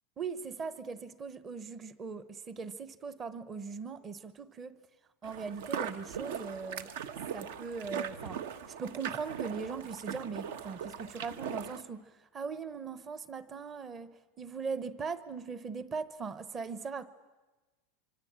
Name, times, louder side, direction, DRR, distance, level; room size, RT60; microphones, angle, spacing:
voice 1, 0.2-4.8 5.2-6.9 7.3-8.4 8.8-17.1, right 5 dB, 15° right, 0.9 m, -40 dB
sound 1, 5.2-11.8, right 8 dB, 65° right, 1.3 m, -40 dB
25.5 x 25.0 x 8.7 m
supercardioid pair, 175°, 0 cm